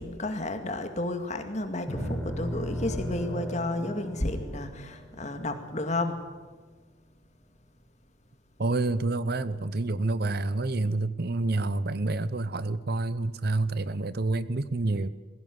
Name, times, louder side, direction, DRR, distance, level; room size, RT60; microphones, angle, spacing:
voice 1, 0.0-6.2, left 2 dB, 35° left, 6 dB, 2.2 m, -32 dB
sound 1, 1.9-6.3, equal, ahead, 5.2 m, -36 dB
voice 2, 8.6-15.1, right 2 dB, 50° right, 15 dB, 0.8 m, -28 dB
21.0 x 16.5 x 9.6 m, 1.4 s
head